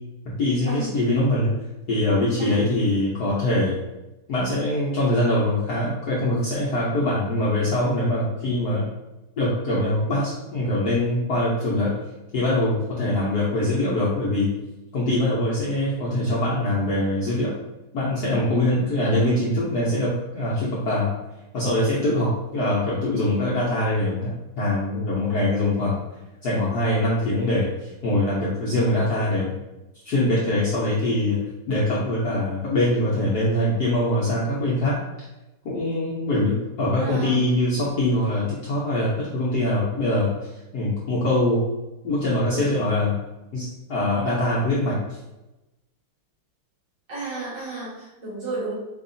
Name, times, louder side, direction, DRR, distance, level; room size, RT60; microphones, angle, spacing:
voice 1, 0.2-1.6 1.9-3.8 4.3-8.9 9.4-11.9 12.3-14.5 14.9-17.5 17.9-21.1 21.5-26.0 26.4-29.6 30.0-31.4 31.7-35.0 35.6-41.6 42.0-43.2 43.5-45.2, left 1 dB, 65° left, -6 dB, 1.0 m, -23 dB
voice 2, 19.0-19.4 37.0-37.5 47.1-48.7, right 3 dB, 60° right, -8 dB, 2.2 m, -32 dB
4.5 x 2.8 x 2.6 m, 1.0 s
omnidirectional pair, 2.4 m